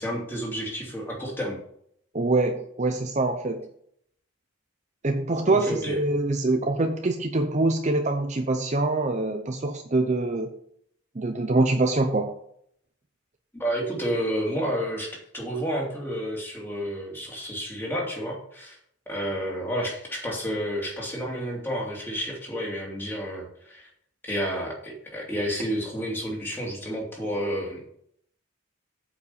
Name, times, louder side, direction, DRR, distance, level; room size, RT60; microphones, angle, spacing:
voice 1, 0.0-1.6 5.5-6.0 13.5-18.8 19.1-23.9 24.2-27.8, equal, 10° left, -2 dB, 2.6 m, -30 dB
voice 2, 2.1-3.7 5.0-10.5 11.2-12.3, right 2 dB, 35° right, 6 dB, 0.6 m, -24 dB
8.2 x 5.3 x 7.0 m, 0.69 s
head